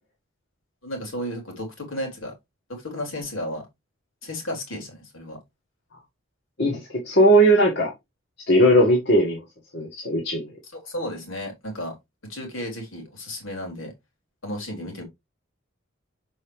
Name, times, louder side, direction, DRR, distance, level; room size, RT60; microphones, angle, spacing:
voice 1, 0.8-2.3 2.7-3.6 4.2-5.4 10.7-12.0 12.3-13.9 14.4-15.0, left 1 dB, 80° left, 3.8 m, -33 dB
voice 2, 6.6-7.9 8.5-9.4 9.7-10.5, right 1 dB, 55° left, 1.7 m, -18 dB
6.6 x 5.4 x 3.3 m
head